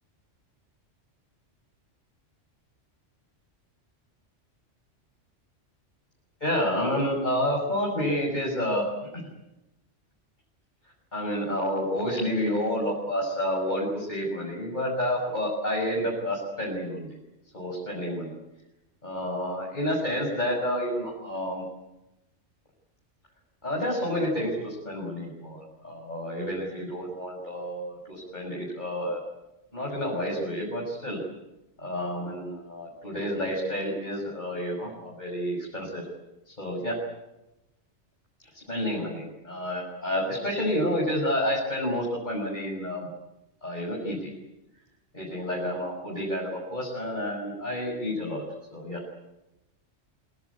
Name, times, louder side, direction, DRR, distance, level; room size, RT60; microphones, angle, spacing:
voice 1, 6.4-9.2 11.1-17.2 17.5-18.3 19.0-21.6 23.6-29.2 29.7-31.2 31.8-36.0 36.5-37.0 38.5-43.1 43.6-44.3 45.1-48.4 48.7-49.0, equal, 35° left, -2 dB, 6.5 m, -29 dB
25.0 x 24.0 x 8.6 m, 0.95 s
omnidirectional pair, 1.3 m